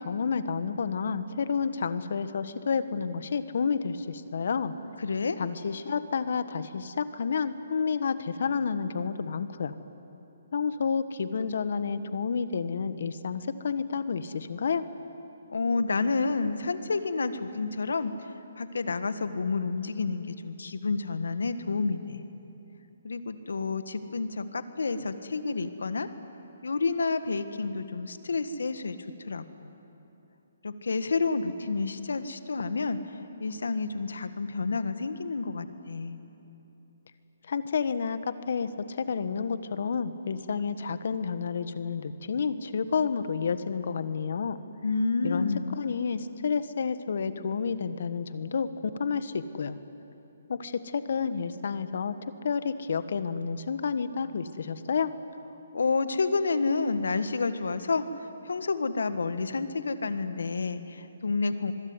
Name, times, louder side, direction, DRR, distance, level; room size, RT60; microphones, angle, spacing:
voice 1, 0.0-4.7 5.4-9.7 10.5-14.9 37.5-44.6 45.2-45.5 45.7-49.8 50.5-52.1 52.4-55.1, left 5 dB, 65° left, 12 dB, 1.4 m, -30 dB
voice 2, 5.0-5.4 15.5-22.2 23.0-26.1 26.6-29.0 29.2-29.7 30.6-33.0 33.4-36.2 44.8-45.8 55.7-58.0 58.4-61.7, left 4 dB, 80° left, 11 dB, 1.6 m, -29 dB
26.0 x 21.5 x 9.7 m, 2.9 s
hypercardioid pair, 145°, 0 cm